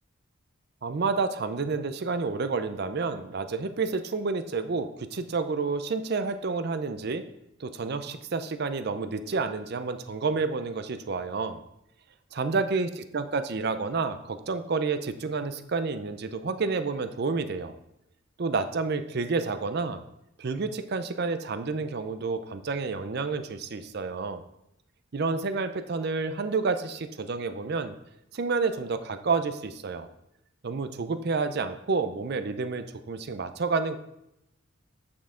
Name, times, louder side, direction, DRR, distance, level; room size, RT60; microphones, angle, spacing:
voice 1, 0.8-7.2 7.6-11.6 12.3-17.7 18.4-20.0 20.4-24.4 25.1-27.9 28.3-30.1 30.6-34.0, right 4 dB, 50° right, 10 dB, 0.5 m, -29 dB
8.5 x 5.8 x 3.7 m, 0.82 s
head